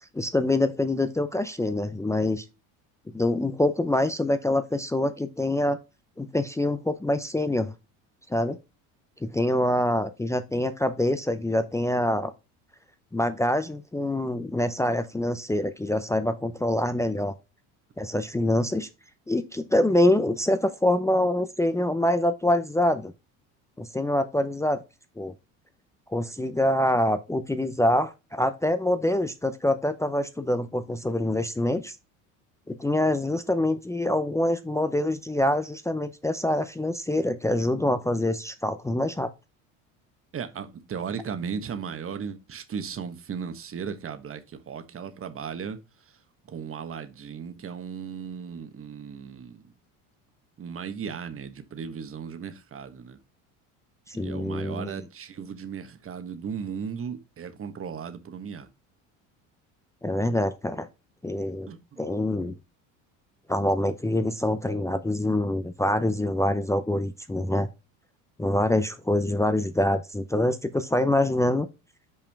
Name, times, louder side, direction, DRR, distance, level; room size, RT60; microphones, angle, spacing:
voice 1, 0.1-2.4 3.1-5.8 6.2-7.7 8.3-8.6 9.2-12.3 13.1-17.3 18.0-18.9 19.3-23.1 23.8-24.8 25.2-25.3 26.1-31.9 32.7-39.3 54.1-54.9 60.0-60.9 61.2-62.5 63.5-67.7 68.4-71.7, left 1 dB, 5° left, 0.6 m, -25 dB
voice 2, 40.3-45.8 46.5-49.6 50.6-53.2 54.2-58.7 61.7-62.0, right 7 dB, 35° right, 1.3 m, -36 dB
5.8 x 4.9 x 3.5 m
supercardioid pair, 90°, 40 cm